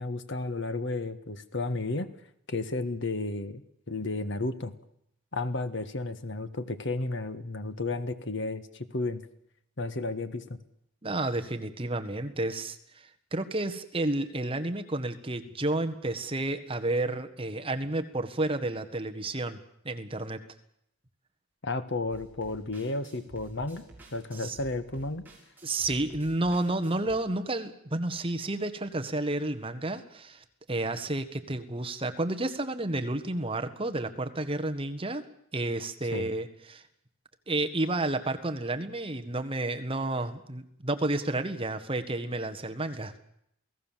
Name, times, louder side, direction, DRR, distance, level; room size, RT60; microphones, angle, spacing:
voice 1, 0.0-2.1 2.5-4.7 5.3-9.3 9.8-10.6 21.6-25.2 36.1-36.3, left 2 dB, 60° left, 11 dB, 1.5 m, -33 dB
voice 2, 11.0-19.6 19.8-20.4 24.4-24.6 25.6-35.2 35.5-36.8 37.5-43.2, right 2 dB, 25° right, 7 dB, 1.6 m, -31 dB
sound 1, 22.1-27.2, right 1 dB, 10° right, 6.8 m, -51 dB
28.0 x 18.0 x 7.5 m, 0.75 s
head